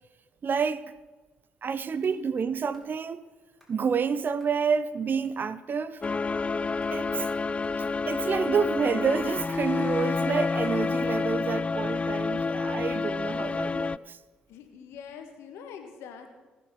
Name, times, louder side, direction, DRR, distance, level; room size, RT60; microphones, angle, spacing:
voice 1, 0.4-0.8 1.6-3.2 3.7-6.0 6.9-7.3 8.1-14.2, right 6 dB, 45° right, 0.6 m, -28 dB
sound 1, 2.0-2.2 2.7-2.9 3.6-3.8 4.4-4.6 5.2-5.4 5.9-6.2 6.8-7.0 7.4-8.1 8.3-8.5 9.2-9.7 10.6-10.8, equal, 5° left, 4.6 m, -61 dB
sound 2, 6.0-14.0, left 4 dB, 25° left, 0.3 m, -29 dB
Car / Engine, 6.9-11.4, left 4 dB, 45° left, 2.5 m, -48 dB
voice 2, 14.5-16.3, left 7 dB, 70° left, 1.6 m, -44 dB
18.5 x 6.3 x 6.1 m
hypercardioid pair, 45°, 5 cm